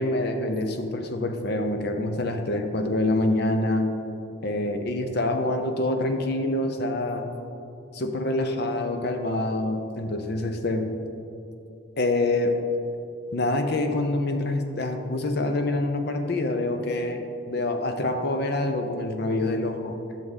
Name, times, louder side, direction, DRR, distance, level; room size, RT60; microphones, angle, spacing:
voice 1, 0.0-3.9 4.4-7.3 7.9-11.0 12.0-12.6 13.3-20.0, left 2 dB, 50° left, 6 dB, 0.7 m, -26 dB
11.0 x 6.7 x 4.0 m, 2.8 s
head